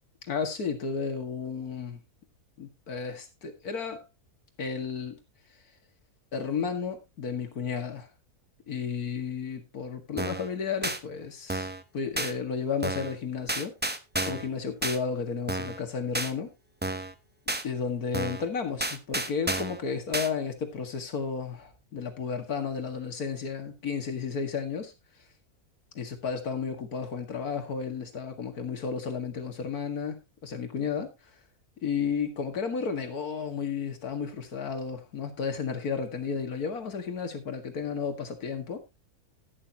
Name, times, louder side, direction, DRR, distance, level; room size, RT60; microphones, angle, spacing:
voice 1, 0.3-2.0 2.6-4.0 4.6-5.2 6.3-8.1 8.7-11.7 11.9-13.8 14.3-16.5 17.6-24.9 25.9-31.1 31.8-38.8, left 6 dB, 80° left, 6 dB, 2.4 m, -33 dB
sound 1, 10.2-10.5 10.8-11.0 11.5-11.8 12.2-12.3 12.8-13.1 13.5-14.5 14.8-15.0 15.5-15.8 16.1-16.3 16.8-17.1 17.5-17.6 18.1-18.5 18.8-19.8 20.1-20.3, right 2 dB, 10° right, 0.5 m, -31 dB
11.5 x 11.5 x 2.9 m, 0.23 s
omnidirectional pair, 1.6 m